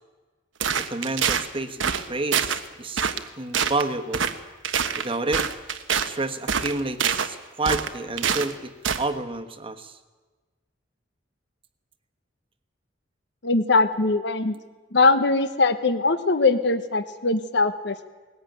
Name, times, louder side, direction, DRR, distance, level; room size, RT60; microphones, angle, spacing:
sound 1, 0.6-1.5 1.8-2.0 2.3-2.6 3.0-3.3 3.5-3.8 4.1-4.3 4.6-6.1 6.5-7.3 7.6-8.5 8.8-9.0, right 7 dB, 85° right, 1.2 m, -25 dB
voice 1, 0.8-3.1 3.4-4.3 5.0-5.5 6.1-8.7 9.0-10.0, right 2 dB, 30° right, 6 dB, 1.3 m, -29 dB
voice 2, 13.4-14.5 14.9-18.1, left 3 dB, 60° left, 11 dB, 1.0 m, -21 dB
20.0 x 17.0 x 9.2 m, 1.3 s
head